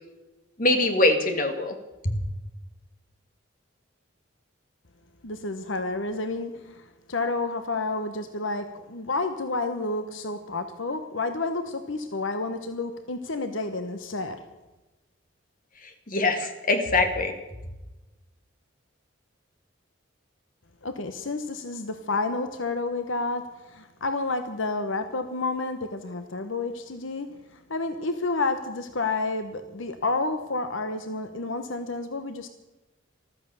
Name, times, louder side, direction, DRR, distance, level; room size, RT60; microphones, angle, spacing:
voice 1, 0.6-1.8 2.0-2.1 15.8-17.3, left 2 dB, 45° left, 6 dB, 2.1 m, -23 dB
voice 2, 5.2-14.4 20.8-32.5, left 3 dB, 75° left, 8 dB, 1.1 m, -30 dB
14.5 x 13.5 x 6.9 m, 1.1 s
head